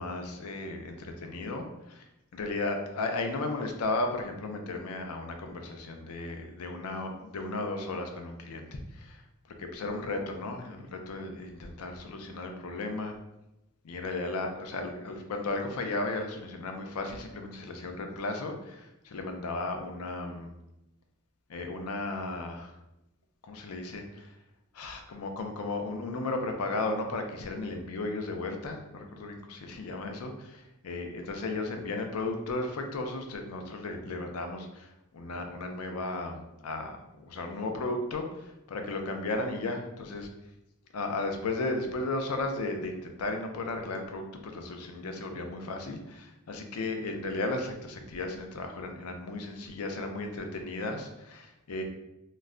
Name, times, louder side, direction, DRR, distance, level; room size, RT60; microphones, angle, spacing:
voice 1, 0.0-2.0 2.3-9.2 9.6-13.2 13.8-20.5 21.5-22.7 23.4-24.3 24.7-40.3 40.9-51.8, left 2 dB, 80° left, 4 dB, 0.5 m, -35 dB
2.2 x 2.1 x 3.6 m, 0.90 s
head